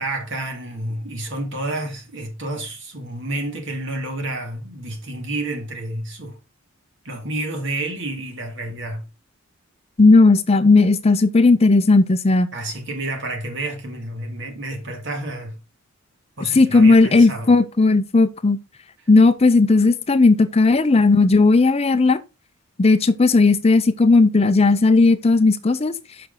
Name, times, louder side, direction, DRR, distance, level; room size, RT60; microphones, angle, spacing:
voice 1, 0.0-6.4 7.0-9.0 12.5-15.6 16.4-17.5, right 2 dB, 60° right, 2.2 m, -30 dB
voice 2, 10.0-12.5 16.5-18.6 19.1-22.2 22.8-25.9, left 3 dB, 30° left, 0.5 m, -15 dB
6.6 x 6.0 x 3.9 m
head